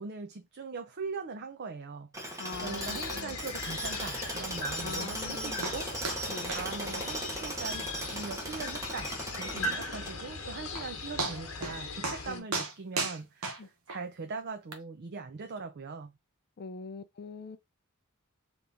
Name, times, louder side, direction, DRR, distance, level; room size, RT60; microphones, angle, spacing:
voice 1, 0.0-2.1 2.6-5.9 6.2-16.1, right 4 dB, 50° right, 0.5 m, -41 dB
Tools, 2.1-10.4, right 1 dB, 15° right, 1.0 m, -38 dB
voice 2, 2.4-3.4 4.8-5.7 6.3-6.5 9.5-9.8 12.3-12.4 13.6-13.7 16.6-17.6, left 4 dB, 45° left, 0.4 m, -42 dB
sound 1, 2.5-12.4, left 3 dB, 75° left, 1.1 m, -39 dB
sound 2, 5.6-5.8 6.0-6.2 6.5-6.7 6.9-7.0 7.5-7.6 8.0-8.1 8.5-8.6 10.3-10.4 10.8-10.9 11.2-11.8 12.0-12.2 12.5-14.0 14.7-14.8, right 3 dB, 75° right, 0.9 m, -34 dB
3.5 x 3.0 x 3.8 m
head